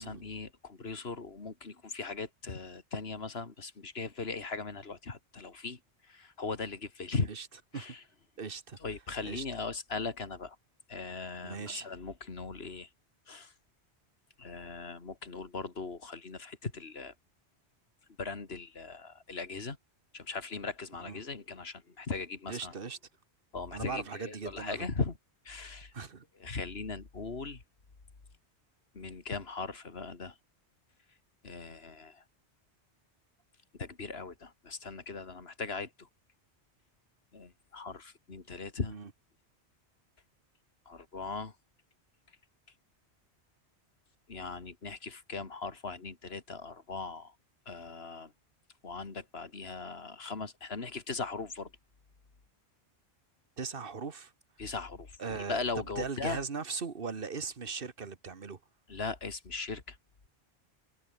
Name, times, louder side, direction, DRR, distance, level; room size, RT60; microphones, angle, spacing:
voice 1, 0.0-5.8 6.1-7.3 7.7-8.0 8.8-10.6 10.9-12.9 13.3-13.5 14.4-17.1 18.2-19.8 20.1-22.7 23.5-25.1 25.5-25.9 26.4-27.6 28.9-30.3 31.4-32.2 33.8-35.9 37.3-38.9 40.9-41.5 44.3-47.3 47.7-48.3 48.8-51.7 54.6-55.1 55.5-56.4 58.9-60.0, left 4 dB, 65° left, 2.6 m, -39 dB
voice 2, 8.4-8.8 9.2-9.5 11.4-11.9 21.0-21.2 22.5-23.0 23.7-24.9 25.9-26.2 38.9-39.1 53.6-54.3 55.2-58.6, right 5 dB, 55° right, 1.7 m, -39 dB
omnidirectional pair, 1.1 m